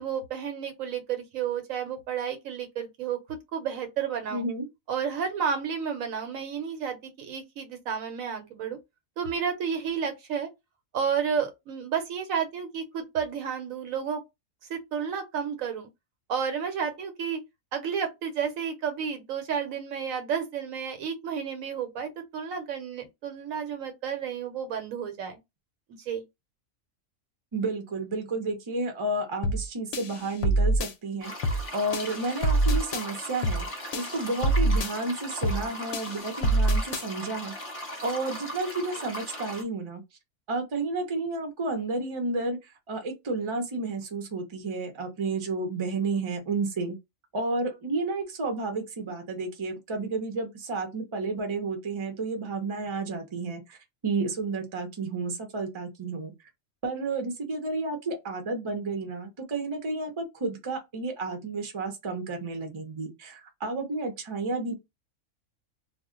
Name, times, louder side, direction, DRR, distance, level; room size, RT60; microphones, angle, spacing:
voice 1, 0.0-4.4 4.9-8.8 9.2-10.5 10.9-14.2 14.7-15.9 16.3-17.4 17.7-25.4 26.1-26.2, right 7 dB, 85° right, 1.2 m, -31 dB
voice 2, 4.3-4.7 27.5-33.7 33.9-37.5 38.0-40.0 40.5-47.0 47.3-53.8 54.0-56.3 56.8-64.8, right 3 dB, 30° right, 0.6 m, -31 dB
sound 1, 29.4-29.7 29.9-30.9 31.4-31.7 31.9-33.1 33.4-33.7 33.9-34.9 35.4-35.7 35.9-37.1, right 1 dB, 60° left, 0.7 m, -25 dB
sound 2, 31.2-39.6, left 1 dB, 30° left, 0.9 m, -38 dB
2.4 x 2.2 x 3.6 m
omnidirectional pair, 1.4 m